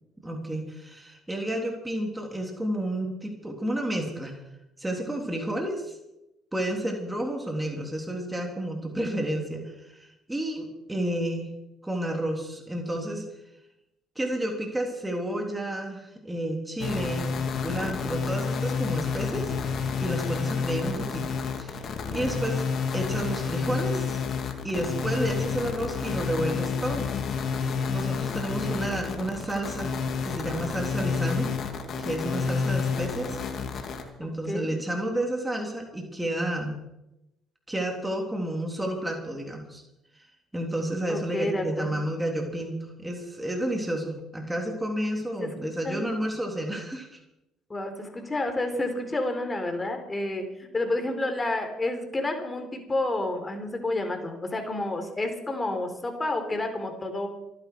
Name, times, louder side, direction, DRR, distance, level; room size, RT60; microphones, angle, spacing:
voice 1, 0.2-4.3 4.8-6.0 6.5-11.5 11.8-13.2 14.1-17.3 17.6-19.5 20.0-22.7 22.9-24.2 24.6-27.1 27.9-31.5 32.0-33.4 33.7-33.9 34.2-36.8 37.7-39.8 40.5-47.2, right 1 dB, 10° right, 1 dB, 3.5 m, -31 dB
sound 1, 16.8-34.0, left 5 dB, 55° left, 2.5 m, -29 dB
voice 2, 22.0-22.4 28.4-28.8 34.2-34.7 41.1-42.0 45.4-46.1 47.7-57.3, left 2 dB, 25° left, 6 dB, 4.1 m, -30 dB
27.0 x 10.0 x 4.8 m, 0.91 s
hypercardioid pair, 55°, 0 cm